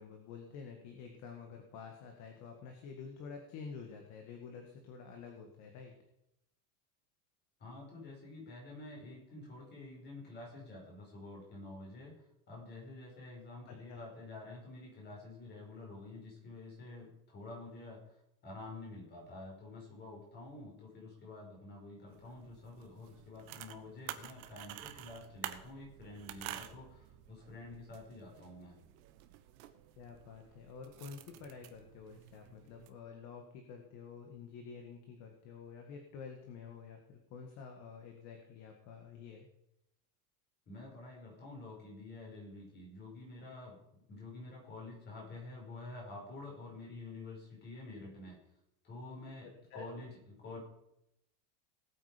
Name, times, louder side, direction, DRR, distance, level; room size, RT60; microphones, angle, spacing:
voice 1, 0.0-5.9 13.7-14.1 30.0-39.5 49.7-50.1, left 5 dB, 40° left, 4 dB, 1.8 m, -49 dB
voice 2, 7.6-12.1 12.5-18.1 18.4-28.8 40.7-43.8 44.1-48.4 48.8-50.6, left 2 dB, 25° left, -2 dB, 5.3 m, -49 dB
sound 1, 22.1-32.9, right 13 dB, 70° right, 1.4 m, -50 dB
19.0 x 8.8 x 5.2 m, 0.84 s
cardioid pair, 175°, 44 cm